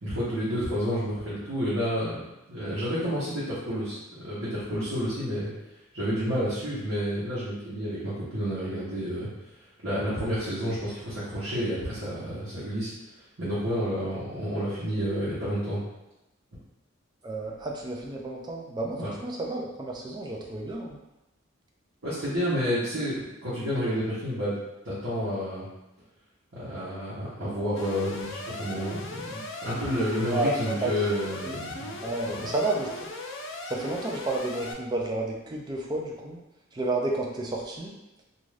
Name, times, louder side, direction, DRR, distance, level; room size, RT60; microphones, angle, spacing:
voice 1, 0.0-4.0 4.2-5.5 5.9-9.3 9.8-12.9 13.4-15.8 18.9-19.1 22.0-24.6 24.8-25.7 26.5-32.0 32.3-32.4, equal, 65° right, -11 dB, 0.9 m, -30 dB
voice 2, 17.2-21.0 30.2-30.5 30.8-30.9 31.5-31.6 32.0-33.1 33.7-36.4 36.7-37.9, right 2 dB, 20° right, -1 dB, 0.3 m, -31 dB
Alarm, 27.8-34.7, left 2 dB, 60° left, 0.4 m, -38 dB
2.6 x 2.4 x 3.2 m, 0.97 s
head